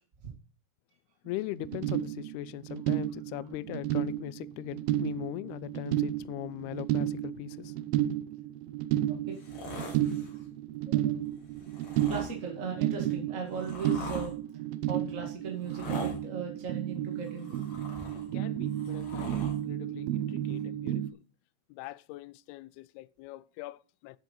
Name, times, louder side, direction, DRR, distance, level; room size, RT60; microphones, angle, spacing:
voice 1, 1.3-7.7 18.3-21.1 21.7-24.2, left 18 dB, 80° left, 2.3 m, -40 dB
sound 1, 1.3-1.4 1.5-21.1, right 12 dB, 80° right, 2.3 m, -32 dB
sound 2, 9.3-10.4 11.6-12.3 13.1-14.3 15.6-16.2 17.2-18.3 18.7-19.6 20.6-20.7, left 3 dB, 40° left, 4.0 m, -43 dB
voice 2, 10.9-11.2 12.1-17.6 18.0-18.1, right 5 dB, 40° right, 1.1 m, -38 dB
11.0 x 7.4 x 5.4 m
omnidirectional pair, 5.1 m